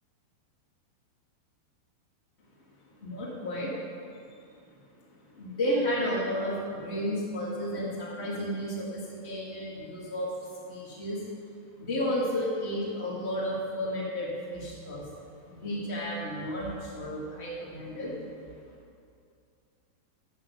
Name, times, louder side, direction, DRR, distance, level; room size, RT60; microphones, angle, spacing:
voice 1, 3.0-3.8 5.3-10.3 10.7-11.2 11.8-15.1 15.4-18.1, equal, 90° left, -5 dB, 0.5 m, -32 dB
11.5 x 8.3 x 6.4 m, 2.4 s
omnidirectional pair, 4.9 m